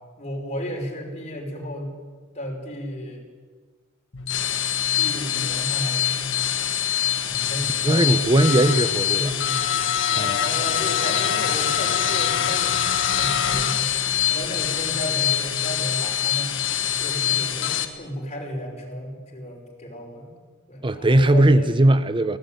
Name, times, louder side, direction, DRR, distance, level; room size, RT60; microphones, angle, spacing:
voice 1, 0.2-1.9 2.3-3.2 4.9-6.5 7.2-8.5 9.1-9.7 10.1-12.8 13.1-13.9 14.3-16.5 17.0-20.4 20.7-21.8, equal, 30° left, 5.7 m, -33 dB
sound 1, 4.1-17.8, left 10 dB, 60° left, 1.7 m, -24 dB
voice 2, 7.8-9.3 10.2-10.3 20.8-22.4, right 1 dB, 25° right, 0.7 m, -18 dB
23.0 x 17.5 x 9.3 m
head